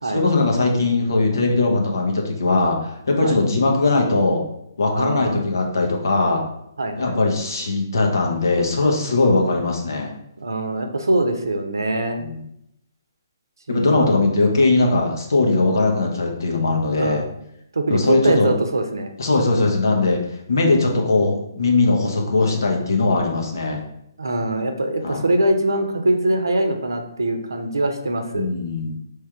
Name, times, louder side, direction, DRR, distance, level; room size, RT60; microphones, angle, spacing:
voice 1, 0.1-4.4 4.8-6.4 7.0-10.1 12.2-12.4 13.7-17.2 17.9-18.5 19.2-20.2 20.5-23.8 25.0-25.2 28.3-28.9, left 3 dB, 65° left, 1 dB, 1.0 m, -20 dB
voice 2, 4.9-5.4 6.8-7.2 10.4-12.2 13.7-14.1 17.0-17.2 17.7-19.1 24.2-28.5, right 1 dB, 75° right, 5 dB, 0.7 m, -23 dB
3.5 x 3.3 x 4.4 m, 0.77 s
figure-of-eight pair, 130°, 2 cm